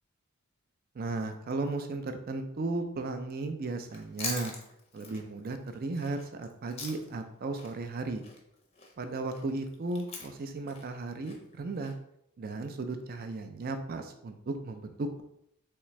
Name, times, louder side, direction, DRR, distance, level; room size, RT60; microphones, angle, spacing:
voice 1, 0.9-4.5 4.9-8.2 9.0-11.9 12.4-15.2, right 3 dB, 40° right, 7 dB, 0.4 m, -35 dB
Chewing mastication, 3.8-7.3 7.6-11.9, left 3 dB, 25° left, 0.6 m, -43 dB
3.6 x 3.3 x 3.1 m, 0.74 s
head